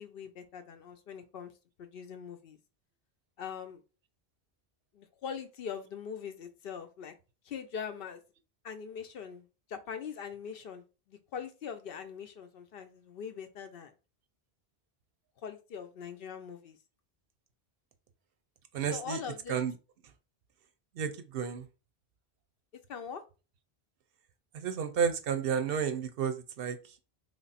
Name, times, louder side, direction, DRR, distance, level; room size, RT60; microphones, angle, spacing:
voice 1, 0.0-1.5 1.8-2.6 3.4-3.8 4.9-7.1 7.4-8.2 8.6-13.9 15.4-16.8 18.9-19.6 22.9-23.2, left 7 dB, 65° left, 8 dB, 0.7 m, -42 dB
voice 2, 18.7-19.8 21.0-21.7 24.5-26.9, right 7 dB, 65° right, 9 dB, 0.7 m, -32 dB
3.2 x 2.4 x 4.0 m, 0.32 s
omnidirectional pair, 1.1 m